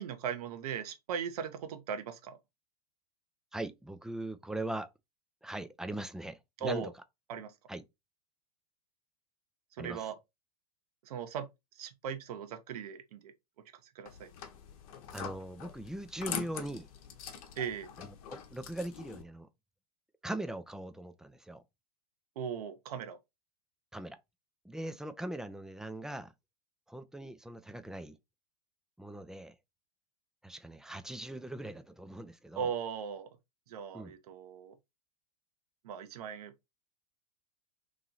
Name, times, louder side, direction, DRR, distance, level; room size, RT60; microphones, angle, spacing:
voice 1, 0.0-2.4 6.6-6.9 7.3-7.5 9.7-10.2 11.0-11.5 11.7-13.3 13.8-14.3 17.6-17.9 22.4-23.2 32.5-33.3 33.7-34.7 35.8-36.5, right 7 dB, 70° right, 0.9 m, -38 dB
voice 2, 3.5-4.9 5.4-6.9 7.7-7.8 9.8-10.1 15.1-16.9 18.0-19.5 20.2-21.6 23.9-24.2 24.6-26.3 26.9-28.2 29.0-29.5 30.4-32.7 33.9-34.1, right 1 dB, 5° right, 0.4 m, -40 dB
sound 1, 14.1-19.2, left 8 dB, 60° left, 0.9 m, -44 dB
3.1 x 2.7 x 3.8 m
hypercardioid pair, 100°, 20 cm